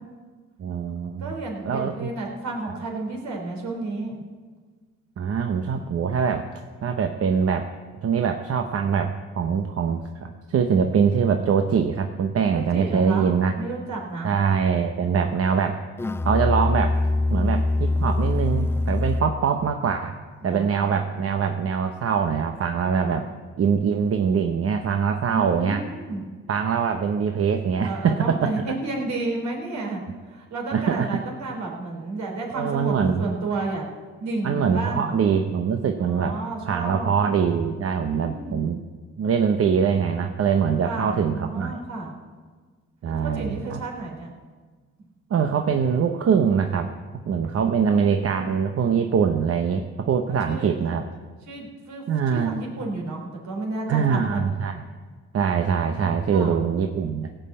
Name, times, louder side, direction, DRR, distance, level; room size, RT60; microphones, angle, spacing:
voice 1, 0.6-1.3 1.6-2.1 5.2-6.5 6.8-7.7 8.0-13.6 14.2-15.8 16.2-17.0 17.3-20.2 20.4-23.3 23.6-25.8 26.5-28.5 30.7-31.1 32.5-33.2 34.4-36.4 36.7-38.8 39.2-41.8 43.0-43.8 45.3-46.9 47.2-51.0 52.1-52.5 53.9-54.8 55.3-57.3, right 6 dB, 50° right, 6 dB, 0.9 m, -23 dB
voice 2, 1.2-4.2 12.5-13.3 13.6-14.3 20.4-20.9 22.9-23.3 25.3-26.2 27.8-30.0 30.3-33.8 34.2-35.2 36.0-37.1 38.1-38.7 40.8-42.1 43.0-44.3 47.6-48.2 50.5-50.8 51.5-54.5 55.9-56.6, right 2 dB, 65° right, 0 dB, 3.6 m, -32 dB
Musical instrument, 16.0-19.5, left 2 dB, 10° left, 0.4 m, -23 dB
16.5 x 5.7 x 8.6 m, 1.5 s
cardioid pair, 90°, 30 cm